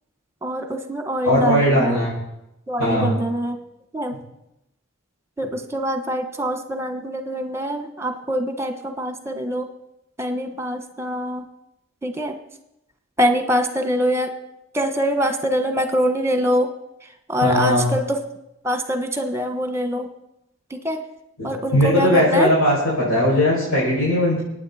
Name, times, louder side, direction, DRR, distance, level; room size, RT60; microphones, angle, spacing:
voice 1, 0.4-2.0 2.7-3.6 3.9-4.2 5.4-9.7 10.2-11.4 12.0-12.3 13.2-14.3 14.7-16.7 17.3-18.2 18.6-20.1 20.7-21.0 21.4-22.5, equal, 10° right, 6 dB, 1.2 m, -24 dB
voice 2, 1.2-2.1 2.8-3.1 17.4-17.8 21.4-24.4, left 1 dB, 85° left, -9 dB, 6.7 m, -19 dB
25.0 x 9.5 x 4.3 m, 0.86 s
head